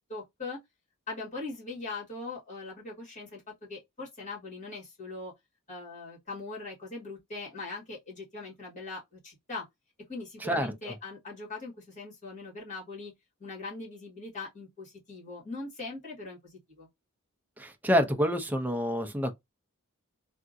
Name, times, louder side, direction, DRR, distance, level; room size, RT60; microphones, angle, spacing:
voice 1, 0.1-0.6 1.1-5.3 5.7-9.7 10.1-13.1 13.4-16.9, left 3 dB, 35° left, 2.0 m, -41 dB
voice 2, 10.4-10.9 17.6-19.3, equal, 10° right, 0.5 m, -28 dB
3.5 x 2.5 x 2.6 m
head